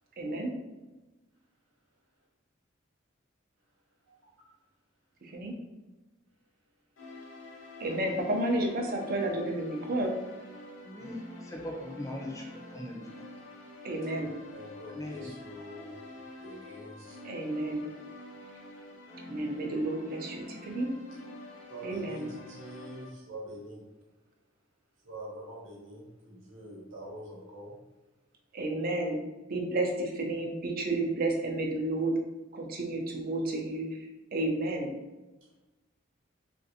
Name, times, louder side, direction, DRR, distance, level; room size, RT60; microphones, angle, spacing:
voice 1, 0.2-0.5 5.2-5.5 7.8-10.1 13.8-14.3 17.2-17.9 19.3-20.9 21.8-22.3 28.5-29.2 29.5-32.1 32.5-33.9 34.3-34.9, right 2 dB, 50° right, 2 dB, 0.5 m, -31 dB
voice 2, 4.1-4.5 14.1-16.0 16.4-17.2 18.5-18.6 21.7-23.9 25.0-27.8 35.4-35.6, right 1 dB, 75° right, -5 dB, 0.9 m, -45 dB
sound 1, 7.0-23.1, left 1 dB, 80° left, 0.7 m, -47 dB
voice 3, 10.8-11.2 11.4-12.5 12.7-13.1 14.9-15.1, left 1 dB, 15° left, -1 dB, 0.6 m, -39 dB
3.2 x 2.5 x 2.7 m, 1.1 s
head